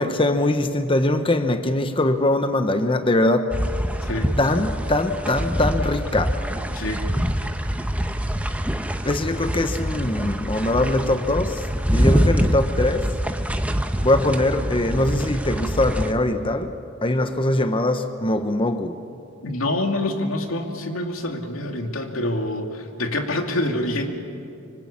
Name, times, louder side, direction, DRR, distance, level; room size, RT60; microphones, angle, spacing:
voice 1, 0.0-3.5 4.4-6.4 9.0-11.6 11.9-13.1 14.0-19.0, left 1 dB, 25° left, 0.9 m, -22 dB
sound 1, 3.5-16.1, equal, 5° right, 1.0 m, -25 dB
voice 2, 4.0-4.3 6.7-7.1 19.4-24.1, left 1 dB, 90° left, 2.7 m, -26 dB
25.5 x 25.5 x 8.6 m
head